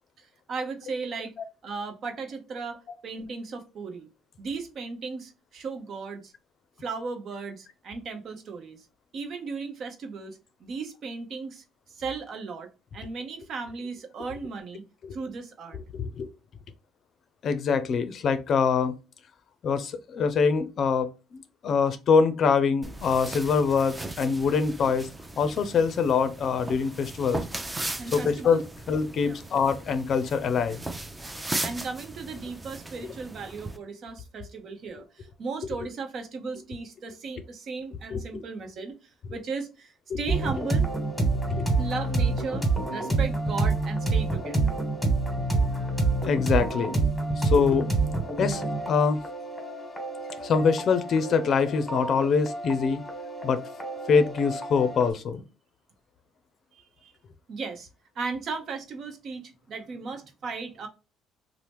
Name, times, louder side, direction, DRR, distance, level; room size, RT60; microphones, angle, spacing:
voice 1, 0.2-1.3 1.6-4.1 4.4-6.3 6.8-8.9 9.1-11.6 11.9-14.8 15.1-15.8 28.0-28.6 29.2-29.4 31.6-40.9 41.8-44.8 56.7-57.1 57.5-57.9 58.1-60.9, right 4 dB, 55° right, 0.8 m, -36 dB
voice 2, 15.7-16.3 17.4-18.9 19.6-25.1 25.4-27.4 28.1-28.6 28.9-30.8 38.1-38.4 40.1-40.2 41.5-41.7 45.5-45.6 46.2-47.0 47.4-47.9 48.4-49.2 50.4-53.0 53.4-53.6 54.1-55.4, left 5 dB, 55° left, 0.5 m, -24 dB
sound 1, 22.8-33.8, right 2 dB, 15° right, 0.5 m, -37 dB
sound 2, 40.3-55.1, right 3 dB, 5° left, 1.3 m, -28 dB
2.9 x 2.0 x 3.3 m
supercardioid pair, 80°, 0 cm